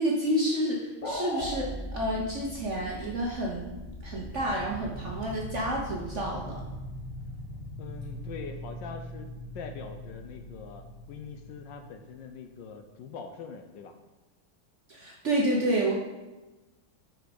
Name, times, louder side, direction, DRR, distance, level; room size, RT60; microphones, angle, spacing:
voice 1, 0.0-3.6 4.0-6.6 14.9-15.9, right 1 dB, 50° right, -2 dB, 0.9 m, -29 dB
sound 1, 1.0-1.6, left 1 dB, 40° left, 1.3 m, -33 dB
sound 2, 1.4-12.8, equal, 20° left, 0.8 m, -41 dB
voice 2, 7.8-13.9, left 5 dB, 75° left, 6 dB, 1.2 m, -43 dB
8.2 x 4.7 x 5.1 m, 1.1 s
omnidirectional pair, 2.3 m